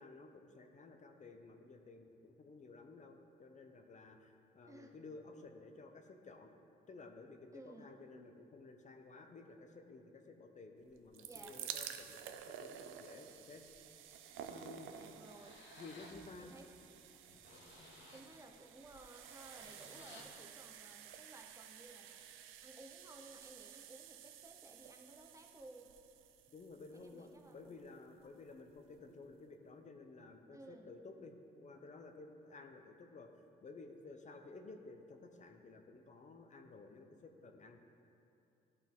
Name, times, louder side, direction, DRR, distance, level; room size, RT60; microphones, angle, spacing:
voice 1, 0.0-6.5 6.9-13.6 14.5-14.9 15.8-16.5 26.5-33.3 33.6-37.8, left 3 dB, 40° left, 5 dB, 0.6 m, -54 dB
voice 2, 7.5-7.9 11.2-11.6 14.8-15.6 16.4-16.6 18.1-22.2 22.6-25.9 26.9-27.6 27.8-28.0 30.5-30.9, right 2 dB, 15° right, 3 dB, 0.6 m, -57 dB
sound 1, 10.9-27.9 28.7-28.8 29.0-29.1, right 9 dB, 90° right, 0.4 m, -52 dB
sound 2, 14.6-14.7 15.2-16.2 16.7-16.8 17.2-18.3 19.2-20.2, left 3 dB, 65° left, 1.1 m, -59 dB
11.5 x 4.0 x 3.6 m, 2.8 s
cardioid pair, 90°, 20 cm